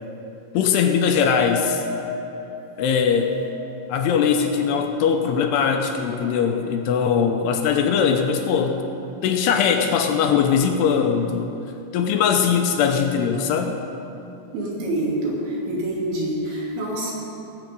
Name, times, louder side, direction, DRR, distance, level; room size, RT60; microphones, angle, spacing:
voice 1, 0.5-1.8 2.8-3.3 3.9-8.8 9.2-11.5 11.9-13.8, left 7 dB, 80° left, 4 dB, 2.6 m, -20 dB
sound 1, 1.2-7.9 8.2-8.8, left 2 dB, 45° left, 3.2 m, -36 dB
voice 2, 14.5-17.1, right 1 dB, 85° right, -5 dB, 5.0 m, -26 dB
18.5 x 8.2 x 5.2 m, 2.9 s
omnidirectional pair, 5.1 m